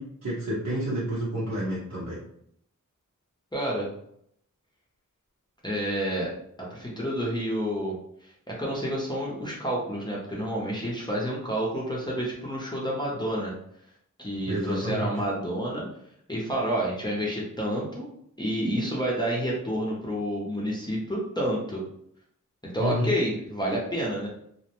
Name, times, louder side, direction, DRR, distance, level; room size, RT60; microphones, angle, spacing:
voice 1, 0.0-2.2 14.5-15.1 22.8-23.1, right 1 dB, 80° right, -10 dB, 0.9 m, -29 dB
voice 2, 3.5-3.9 5.6-6.3 6.7-7.9 8.2-13.5 14.2-15.8 16.3-18.1 18.4-21.8 22.6-24.3, equal, 15° left, -5 dB, 0.6 m, -29 dB
2.5 x 2.1 x 2.9 m, 0.70 s
wide cardioid pair, 85°, 32 cm